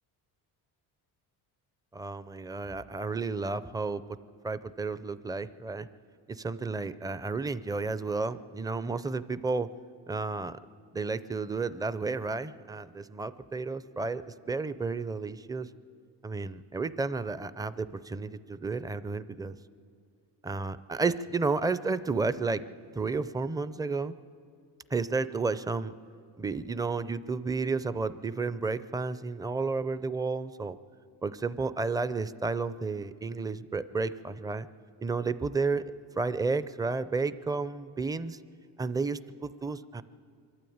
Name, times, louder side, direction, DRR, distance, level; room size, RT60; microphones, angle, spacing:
voice 1, 1.9-4.0 4.4-5.9 6.3-9.7 10.1-10.6 10.9-15.7 16.2-19.6 20.4-22.6 22.9-24.1 24.9-25.9 26.4-30.8 31.2-34.7 35.0-35.8 36.2-38.4 38.8-40.0, right 4 dB, 10° right, 14 dB, 0.4 m, -32 dB
24.0 x 12.5 x 8.7 m, 2.4 s
cardioid pair, 110°, 41 cm